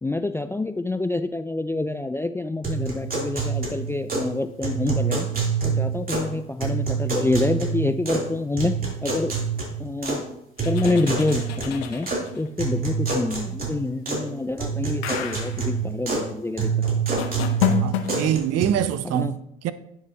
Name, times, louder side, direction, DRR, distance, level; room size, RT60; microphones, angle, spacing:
voice 1, 0.0-5.3 5.6-8.8 9.0-9.3 9.8-10.2 10.6-16.7 19.1-19.3, left 2 dB, 10° left, 0.3 m, -27 dB
sound 1, 2.6-4.3 4.6-6.3 6.6-8.3 8.6-10.2 10.6-12.2 12.6-14.3 14.6-16.3 16.6-18.6, right 5 dB, 30° right, 3.5 m, -26 dB
sound 2, 10.6-12.5 15.0-15.7 17.2-18.3, left 9 dB, 85° left, 0.9 m, -28 dB
voice 2, 17.8-19.7, right 10 dB, 55° right, 0.7 m, -25 dB
9.9 x 6.5 x 3.0 m
hypercardioid pair, 60°, 31 cm